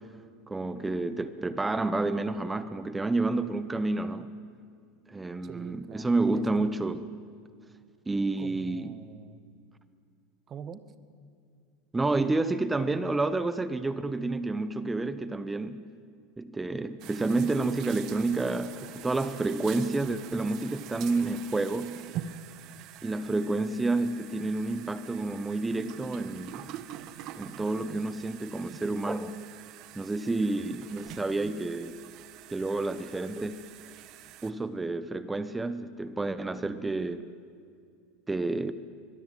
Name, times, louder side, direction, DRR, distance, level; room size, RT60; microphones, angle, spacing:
voice 1, 0.5-4.3 5.1-7.0 8.1-8.9 11.9-15.8 16.4-22.0 23.0-26.8 27.4-29.4 29.9-32.0 32.5-33.6 34.4-37.2 38.3-38.7, right 2 dB, 10° right, 13 dB, 1.0 m, -29 dB
voice 2, 5.4-6.7 8.4-9.5 10.5-10.9, right 7 dB, 35° right, 13 dB, 1.7 m, -45 dB
sound 1, 17.0-34.5, right 11 dB, 55° right, 1.4 m, -45 dB
24.0 x 21.5 x 9.2 m, 2.3 s
supercardioid pair, 110°, 0 cm